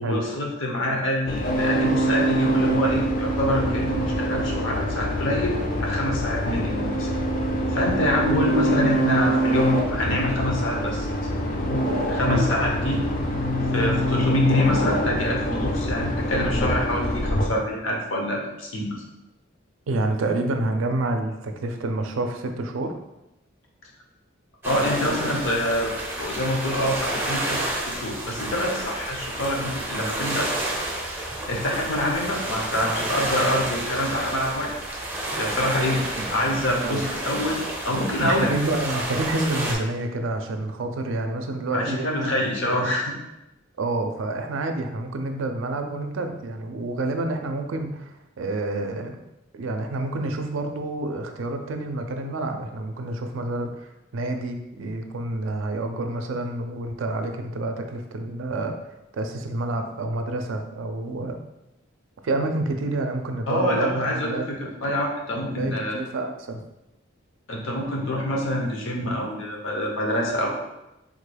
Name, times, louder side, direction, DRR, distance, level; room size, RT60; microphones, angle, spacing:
voice 1, 0.0-7.1 7.7-11.1 12.1-13.0 13.7-19.0 24.6-25.9 26.2-30.5 31.5-34.8 35.4-36.0 36.3-38.5 41.7-43.1 63.5-66.0 67.5-70.5, left 1 dB, 70° left, -1 dB, 0.7 m, -26 dB
sound 1, 1.3-17.4, right 1 dB, 40° left, 0.4 m, -25 dB
voice 2, 19.9-23.0 35.9-36.3 36.8-37.1 38.2-42.4 42.7-43.0 43.8-49.2 49.5-58.8 59.1-61.4 62.2-64.5 65.5-66.6, right 2 dB, 75° right, 6 dB, 0.4 m, -28 dB
sound 2, 24.6-39.8, right 1 dB, 10° right, 0.5 m, -30 dB
3.6 x 2.2 x 3.2 m, 0.92 s
head